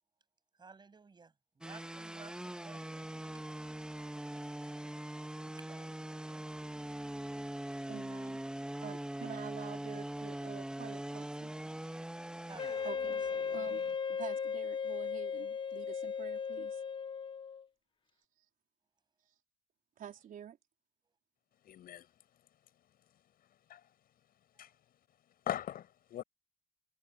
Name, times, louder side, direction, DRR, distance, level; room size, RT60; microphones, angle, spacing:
voice 1, 0.6-3.1 4.4-6.5 9.9-10.0 12.5-13.7 14.1-14.3 24.6-24.7, right 4 dB, 25° right, 7.9 m, -57 dB
sound 1, 1.6-13.9, right 1 dB, 5° right, 1.8 m, -42 dB
voice 2, 7.9-8.4 8.8-11.5 12.8-13.2 13.5-13.8 14.2-16.8 20.0-20.6, right 9 dB, 55° right, 4.2 m, -48 dB
Wind instrument woodwind instrument, 12.6-17.6, left 6 dB, 30° left, 0.9 m, -37 dB
voice 3, 21.6-22.1 23.7-23.9 24.6-24.8 25.5-26.2, left 11 dB, 60° left, 7.1 m, -40 dB
cardioid pair, 110°, 17 cm